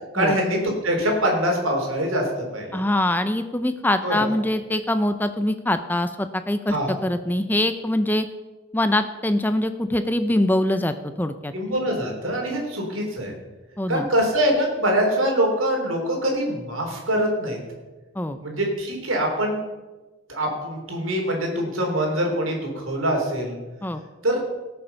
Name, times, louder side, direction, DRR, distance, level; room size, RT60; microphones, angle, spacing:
voice 1, 0.1-2.2 2.5-2.8 4.0-4.3 6.7-6.9 11.5-13.3 13.9-17.6 18.4-19.6 20.3-23.6 24.2-24.4, equal, 85° right, 1 dB, 3.6 m, -24 dB
voice 2, 2.7-8.3 8.7-11.5 13.8-14.1 18.1-18.4 23.8-24.0, left 1 dB, 10° left, 9 dB, 0.5 m, -23 dB
19.0 x 6.9 x 5.6 m, 1.2 s
head